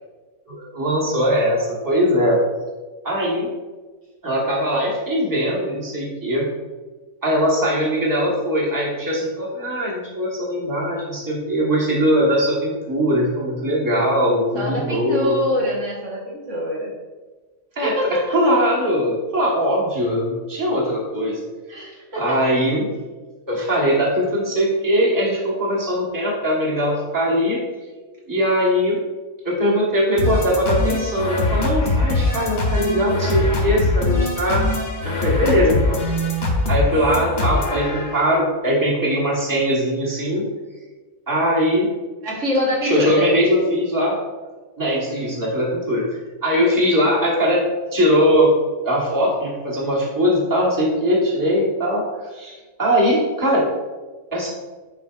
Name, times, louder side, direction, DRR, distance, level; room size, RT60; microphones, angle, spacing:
voice 1, 0.5-2.4 3.0-3.5 4.2-6.5 7.2-15.4 17.7-21.4 22.1-22.9 23.5-27.6 28.3-29.0 29.4-34.6 35.0-36.0 36.2-36.3 36.7-40.4 41.3-41.9 42.8-44.1 44.8-46.0 46.4-47.6 47.9-48.5 48.8-53.6 54.3-54.5, equal, 15° right, -5 dB, 1.3 m, -20 dB
voice 2, 14.6-16.9 17.8-18.2 21.7-22.2 27.9-28.4 42.2-43.4, equal, 75° right, -4 dB, 1.7 m, -25 dB
sound 1, 30.2-38.4, left 2 dB, 65° left, 1.3 m, -22 dB
9.7 x 4.0 x 2.4 m, 1.3 s
omnidirectional pair, 1.3 m